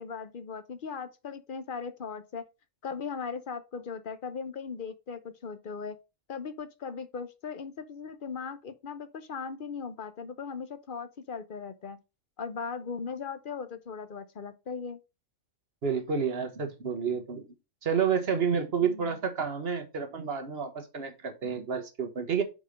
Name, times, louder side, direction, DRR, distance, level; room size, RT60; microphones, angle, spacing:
voice 1, 0.0-2.4 2.8-6.0 6.3-12.0 12.4-15.0 18.8-19.2, left 5 dB, 50° left, 0.8 m, -38 dB
voice 2, 15.8-17.5 17.8-22.4, right 6 dB, 50° right, 1.3 m, -30 dB
5.3 x 5.2 x 5.0 m
omnidirectional pair, 1.4 m